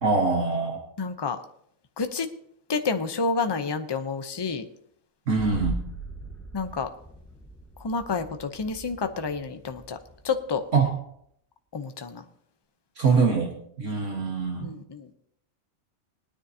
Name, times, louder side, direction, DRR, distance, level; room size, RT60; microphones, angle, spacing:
voice 1, 0.0-0.8 5.3-5.8 10.7-11.0 13.0-13.5 13.8-14.7, right 4 dB, 65° right, 2 dB, 1.9 m, -23 dB
voice 2, 1.0-1.4 2.0-2.3 2.7-4.6 6.5-6.9 7.8-10.0 10.2-10.6 11.7-12.2 14.6-15.1, left 4 dB, 25° left, 8 dB, 0.6 m, -29 dB
sound 1, 5.4-10.9, right 1 dB, ahead, 1.2 m, -39 dB
21.0 x 9.9 x 2.8 m, 0.69 s
omnidirectional pair, 1.4 m